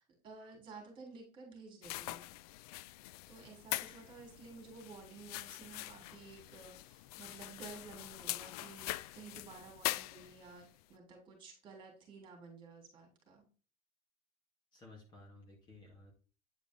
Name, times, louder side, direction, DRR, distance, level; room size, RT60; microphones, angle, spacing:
voice 1, 0.0-2.3 3.3-13.5, right 4 dB, 25° right, 2 dB, 3.5 m, -53 dB
sound 1, 1.8-10.6, left 17 dB, 90° left, 0.4 m, -43 dB
voice 2, 14.7-16.1, left 2 dB, 25° left, 1 dB, 2.1 m, -56 dB
9.3 x 5.0 x 3.7 m, 0.37 s
cardioid pair, 165°, 19 cm